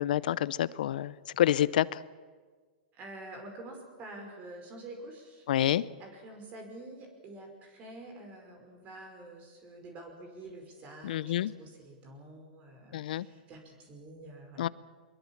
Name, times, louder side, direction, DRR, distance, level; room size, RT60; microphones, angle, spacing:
voice 1, 0.0-1.8 5.5-5.8 11.0-11.5 12.9-13.3 14.6-14.7, left 12 dB, 70° left, 19 dB, 0.7 m, -28 dB
voice 2, 2.9-5.7 6.0-14.7, right 2 dB, 30° right, 3 dB, 5.3 m, -47 dB
23.5 x 22.0 x 7.3 m, 1.5 s
hypercardioid pair, 125°, 5 cm